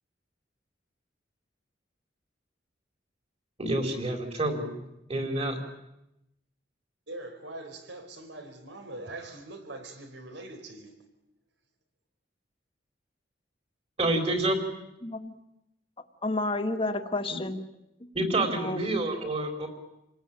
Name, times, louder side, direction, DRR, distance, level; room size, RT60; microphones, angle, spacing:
voice 1, 3.6-4.8 5.1-5.6 14.0-14.6 18.1-19.7, right 2 dB, 35° right, 4.3 m, -28 dB
voice 2, 7.1-11.0, right 2 dB, 80° right, 4.6 m, -42 dB
voice 3, 15.0-15.3 16.2-17.6 18.5-18.9, left 2 dB, 30° left, 1.7 m, -30 dB
29.0 x 19.0 x 9.1 m
head